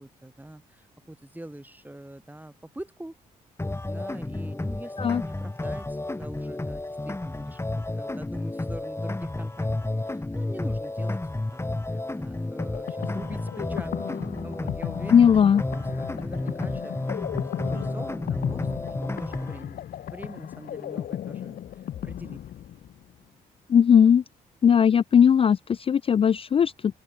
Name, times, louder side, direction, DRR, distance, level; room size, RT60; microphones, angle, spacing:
voice 1, 0.0-3.1 3.9-11.2 11.5-11.6 11.9-19.8 20.1-21.6 22.0-22.4, right 1 dB, 10° right, 5.7 m, -44 dB
sound 1, 3.6-19.6, left 2 dB, 15° left, 2.4 m, -32 dB
sound 2, 12.6-23.1, left 11 dB, 65° left, 0.8 m, -35 dB
voice 2, 15.1-15.6 23.7-24.2 24.6-26.9, left 7 dB, 35° left, 0.3 m, -18 dB
open air
supercardioid pair, 60°, 17 cm